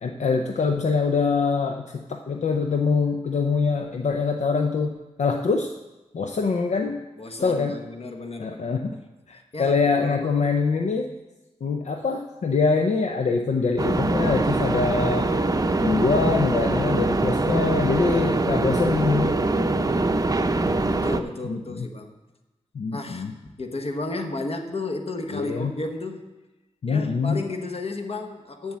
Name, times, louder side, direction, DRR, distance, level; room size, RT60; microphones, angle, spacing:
voice 1, 0.0-5.7 6.1-7.0 7.4-7.8 8.4-9.0 9.3-11.1 11.6-15.3 15.8-19.3 21.4-21.9 22.7-23.3 25.3-25.7 26.8-27.4, left 4 dB, 80° left, 3 dB, 0.6 m, -24 dB
voice 2, 7.2-8.6 9.5-10.6 18.0-18.8 20.3-22.2 22.9-23.3 23.6-26.3 26.9-28.8, left 2 dB, 60° left, 4 dB, 1.2 m, -33 dB
sound 1, 13.8-21.2, right 2 dB, 30° right, 0.6 m, -23 dB
7.7 x 7.2 x 7.3 m, 1.1 s
wide cardioid pair, 70°, 12 cm